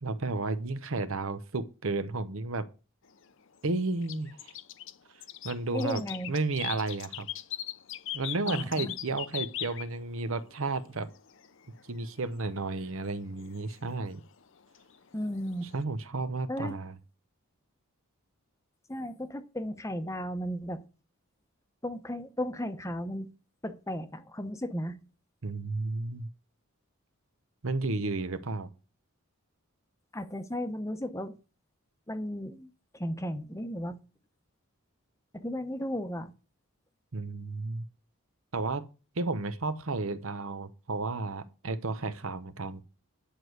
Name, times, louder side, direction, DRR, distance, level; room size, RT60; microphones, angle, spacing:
voice 1, 0.0-2.7 3.6-4.5 5.4-7.3 8.1-11.1 11.9-14.2 15.7-17.0 25.4-26.3 27.6-28.7 37.1-37.8 38.5-38.8 39.2-42.8, right 3 dB, 70° right, 0.9 m, -32 dB
sound 1, 3.1-15.8, left 13 dB, 60° left, 0.7 m, -41 dB
voice 2, 5.7-6.3 8.5-8.9 15.1-15.7 16.5-16.7 18.9-20.8 21.8-23.3 23.6-25.0 30.1-31.3 32.1-34.0 35.3-36.3, equal, 15° left, 0.8 m, -35 dB
10.0 x 4.7 x 8.0 m
head